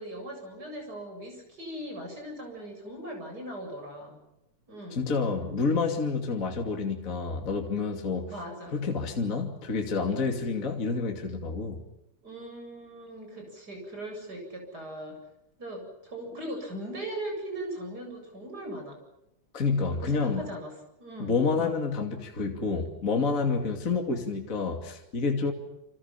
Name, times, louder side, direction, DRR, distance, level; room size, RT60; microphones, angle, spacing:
voice 1, 0.0-4.2 4.7-5.0 8.2-8.8 12.2-15.2 15.6-19.0 19.9-21.7, right 1 dB, 30° right, 3 dB, 8.5 m, -39 dB
voice 2, 4.9-8.3 8.7-11.8 19.5-20.5 21.2-25.5, left 4 dB, 25° left, 3 dB, 2.8 m, -28 dB
29.5 x 27.0 x 5.8 m, 0.87 s
omnidirectional pair, 3.5 m